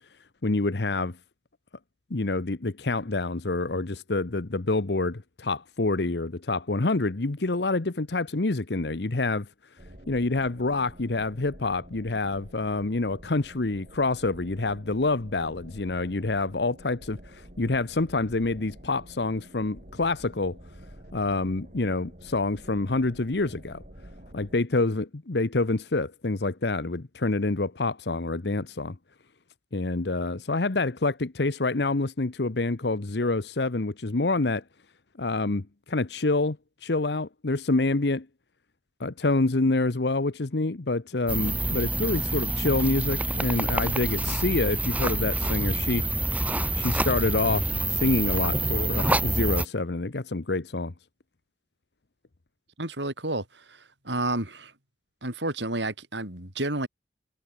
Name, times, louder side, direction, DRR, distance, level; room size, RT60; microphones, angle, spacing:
voice 1, 0.4-1.2 2.1-9.5 10.1-20.6 21.1-23.8 24.3-29.0 29.7-34.6 35.2-38.3 39.0-46.1 46.7-50.9, left 2 dB, 70° left, 1.0 m, -27 dB
sound 1, 9.8-24.6, equal, 45° right, 5.9 m, -49 dB
sound 2, 41.3-49.7, right 2 dB, 10° right, 1.0 m, -27 dB
voice 2, 52.8-53.8 54.0-54.7 55.2-56.9, right 2 dB, 85° right, 6.2 m, -30 dB
head